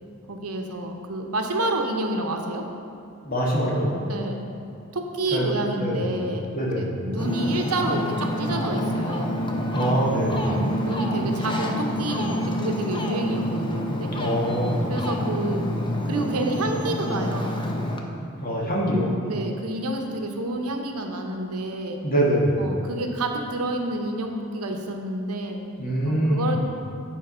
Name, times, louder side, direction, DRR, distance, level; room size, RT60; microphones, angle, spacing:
voice 1, 0.3-2.6 4.1-4.4 4.9-6.5 6.8-9.4 10.4-14.1 14.9-15.7 16.1-17.6 19.3-22.0 22.6-25.6 26.1-26.6, right 1 dB, 75° right, 3 dB, 0.8 m, -29 dB
voice 2, 3.2-3.9 5.3-5.5 5.8-6.1 6.5-7.0 9.7-10.5 14.1-14.9 18.4-19.1 22.0-22.6 25.8-26.5, equal, 40° left, -4 dB, 1.7 m, -24 dB
Ocean, 7.2-18.0, equal, 20° left, 0.7 m, -28 dB
9.0 x 4.6 x 5.6 m, 2.7 s
head